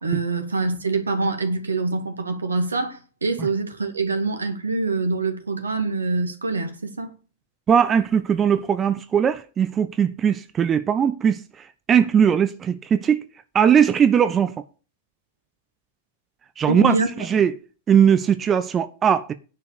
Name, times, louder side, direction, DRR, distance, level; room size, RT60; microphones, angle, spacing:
voice 1, 0.0-7.2 16.7-17.1, right 3 dB, 75° right, 2.3 m, -25 dB
voice 2, 7.7-13.3 13.5-14.5 16.6-17.5 17.9-19.3, right 8 dB, 25° right, 0.7 m, -19 dB
10.5 x 5.7 x 6.6 m
figure-of-eight pair, 90°, 0 cm